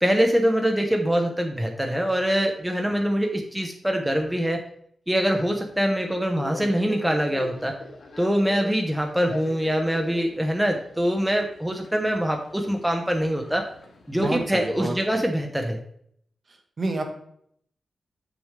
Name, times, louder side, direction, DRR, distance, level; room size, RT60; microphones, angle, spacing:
voice 1, 0.0-4.6 5.1-7.7 8.2-13.7 14.1-15.8, equal, 5° right, 2 dB, 0.7 m, -24 dB
Subway metro underground, 5.3-15.0, left 2 dB, 60° left, 1.5 m, -42 dB
voice 2, 14.1-15.3 16.8-17.1, right 2 dB, 45° right, 3 dB, 1.2 m, -29 dB
7.7 x 6.4 x 3.3 m, 0.67 s
wide cardioid pair, 145°, 0 cm